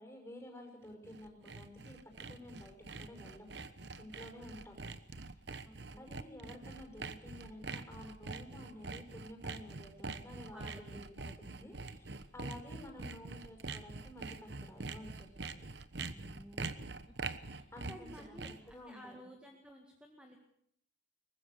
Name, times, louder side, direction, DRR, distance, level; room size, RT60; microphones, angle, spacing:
voice 1, 0.0-3.5 4.0-4.8 5.2-5.3 6.0-15.7 17.7-19.2, left 1 dB, 15° left, 2 dB, 5.8 m, -52 dB
Sawing, 0.9-18.7, right 3 dB, 65° right, 1.1 m, -44 dB
voice 2, 5.7-6.1 10.5-11.8 13.0-13.2 16.1-16.8 17.5-20.4, equal, 5° right, 2 dB, 1.9 m, -54 dB
23.0 x 19.5 x 6.7 m, 0.70 s
head